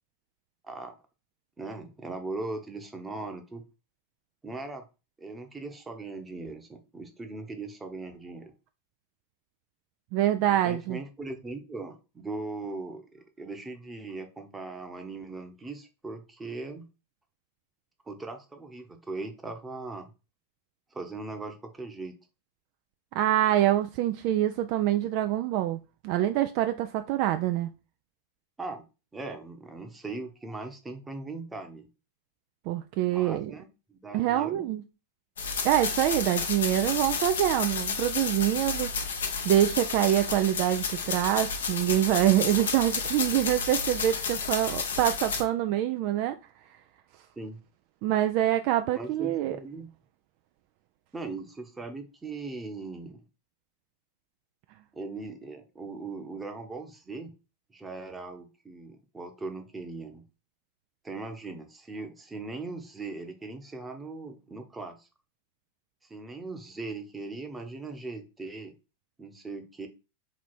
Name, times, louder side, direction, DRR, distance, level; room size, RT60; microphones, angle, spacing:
voice 1, 0.6-1.0 1.6-3.6 4.4-4.8 5.2-8.5 10.5-16.9 18.1-20.1 20.9-22.1 28.6-28.8 29.1-31.9 33.1-34.7 47.4-47.6 48.9-49.9 51.1-53.2 54.9-57.3 57.7-60.2 61.0-65.1 66.1-68.7 69.2-69.9, right 3 dB, 10° right, 0.9 m, -39 dB
voice 2, 10.1-11.0 23.1-25.8 26.0-27.7 32.7-33.5 34.1-34.8 35.6-39.2 39.4-46.4 48.0-49.6, right 13 dB, 45° right, 0.3 m, -25 dB
sound 1, 35.4-45.4, left 5 dB, 65° left, 0.8 m, -31 dB
3.9 x 3.1 x 4.3 m
figure-of-eight pair, 90°, 0 cm